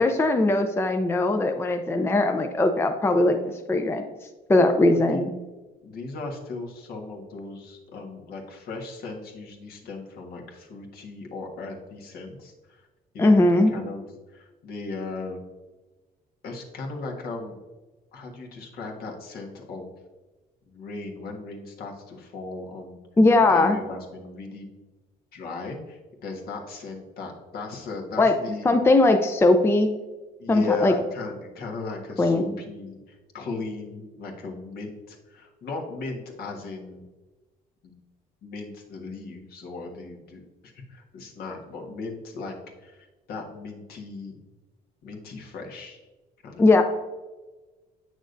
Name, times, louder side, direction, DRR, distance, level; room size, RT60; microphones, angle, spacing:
voice 1, 0.0-4.1 4.5-5.3 13.2-13.8 23.2-23.8 28.2-28.3 28.6-29.9 30.5-30.9 32.2-32.5 46.6-46.8, left 2 dB, 15° left, 5 dB, 0.5 m, -20 dB
voice 2, 4.9-5.2 5.8-12.9 13.1-14.0 14.3-15.4 16.4-17.6 18.1-19.9 20.7-23.0 23.4-24.7 25.3-28.7 30.4-37.0 37.8-37.9 38.4-44.4 45.0-46.0 46.4-46.6, left 3 dB, 65° left, 1 dB, 1.5 m, -37 dB
8.0 x 6.2 x 2.6 m, 1.2 s
cardioid pair, 110°, 17 cm